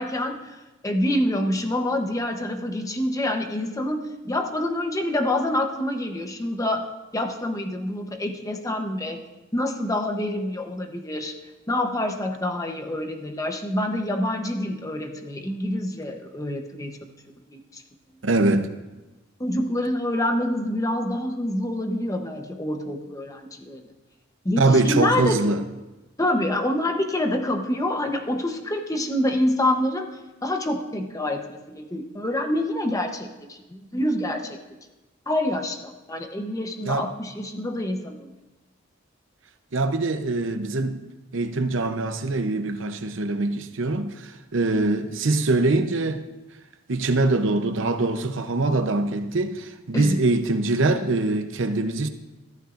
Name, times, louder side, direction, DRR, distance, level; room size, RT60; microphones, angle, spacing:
voice 1, 0.0-6.9 7.1-9.2 9.5-11.3 11.7-17.0 17.5-17.8 19.4-23.8 24.4-25.4 26.2-30.1 30.4-34.6 35.3-38.3 49.9-50.2, left 1 dB, 15° left, 0.9 m, -26 dB
voice 2, 18.2-18.7 24.6-25.6 36.9-37.1 39.7-41.0 41.3-46.2 46.9-52.1, right 2 dB, 65° right, 0.8 m, -23 dB
14.0 x 12.0 x 2.5 m
head